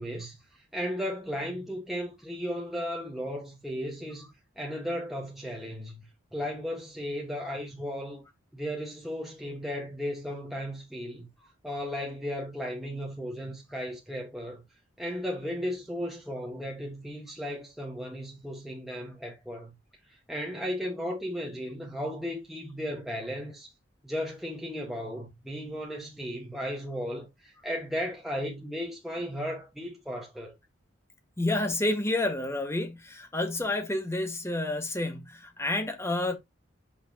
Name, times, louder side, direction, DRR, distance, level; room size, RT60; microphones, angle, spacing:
voice 1, 0.0-4.3 4.6-6.0 6.3-8.2 8.5-11.3 11.6-14.6 15.0-19.7 20.1-23.7 24.0-30.5, equal, ahead, 1.4 m, -35 dB
voice 2, 31.4-36.4, left 2 dB, 15° left, 1.6 m, -29 dB
7.0 x 6.1 x 2.9 m
head